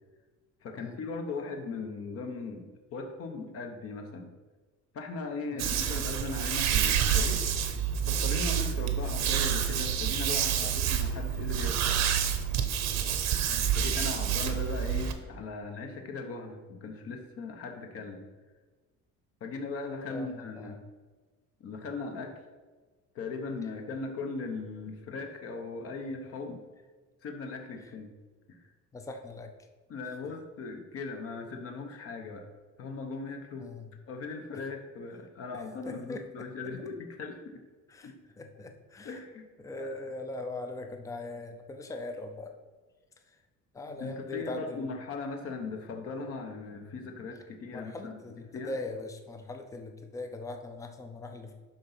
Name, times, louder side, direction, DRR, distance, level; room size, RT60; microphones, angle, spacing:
voice 1, 0.6-4.3 4.9-7.4 8.0-11.9 13.7-18.2 19.4-20.8 21.6-22.4 23.1-26.6 27.2-28.1 28.5-28.7 29.9-32.4 32.8-33.7 34.1-37.6 38.0-38.2 39.0-39.5 39.8-39.9 44.0-48.7, left 4 dB, 45° left, 4 dB, 1.1 m, -39 dB
skin touch, 5.6-15.1, right 8 dB, 60° right, 0.9 m, -28 dB
voice 2, 20.1-20.8 28.9-29.5 33.6-33.9 35.5-36.7 37.9-39.2 39.6-42.5 43.3-43.4 43.7-44.9 47.7-51.6, left 2 dB, 10° left, 5 dB, 0.5 m, -41 dB
11.5 x 4.0 x 5.7 m, 1.3 s
cardioid pair, 180°, 31 cm